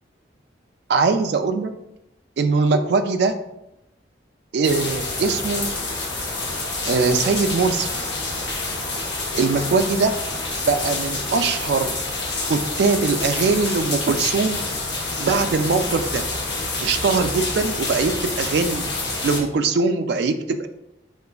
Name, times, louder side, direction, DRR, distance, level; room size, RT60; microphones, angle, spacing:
voice 1, 0.9-1.7 2.4-3.3 4.5-5.7 6.8-7.9 9.3-10.1 10.6-11.9 12.5-14.6 15.2-16.2 16.8-18.9 19.2-20.7, right 4 dB, 65° right, 7 dB, 0.3 m, -21 dB
sound 1, 4.6-19.4, left 2 dB, 75° left, 0.8 m, -27 dB
4.8 x 2.4 x 2.3 m, 0.87 s
head